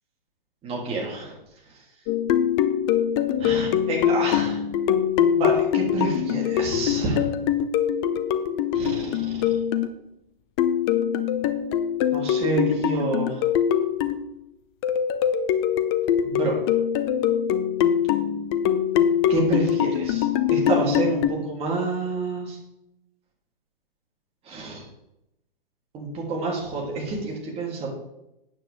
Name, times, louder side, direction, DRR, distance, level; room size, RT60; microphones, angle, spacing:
voice 1, 0.6-1.3 3.4-4.6 5.3-7.3 8.7-9.6 12.1-13.4 16.2-16.6 19.3-22.6 24.4-24.8 25.9-27.9, right 3 dB, 20° right, -1 dB, 3.1 m, -28 dB
sound 1, 2.1-9.9 10.6-14.3 14.8-21.3, left 9 dB, 25° left, 0.6 m, -23 dB
12.5 x 9.1 x 3.6 m, 0.87 s
figure-of-eight pair, 115°, 29 cm